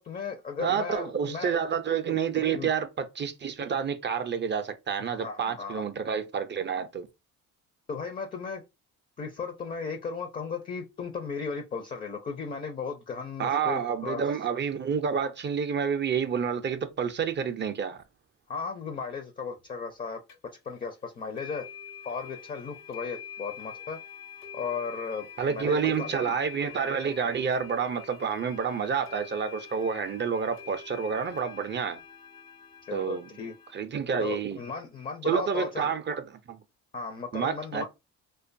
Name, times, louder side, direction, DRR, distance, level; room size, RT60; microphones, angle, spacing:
voice 1, 0.0-1.5 2.5-2.7 5.0-5.9 7.9-8.6 9.2-14.2 18.5-20.2 20.6-21.7 22.0-24.0 24.5-26.4 32.9-33.5 34.2-35.9 36.9-37.8, left 5 dB, 25° left, 0.4 m, -36 dB
voice 2, 0.6-7.1 13.4-18.0 25.4-32.0 32.9-33.3 33.7-34.6 35.2-36.6 37.3-37.8, right 6 dB, 35° right, 0.4 m, -29 dB
sound 1, 20.3-20.4 21.4-33.8, left 7 dB, 75° left, 1.2 m, -46 dB
2.5 x 2.2 x 2.5 m
cardioid pair, 95°, 35 cm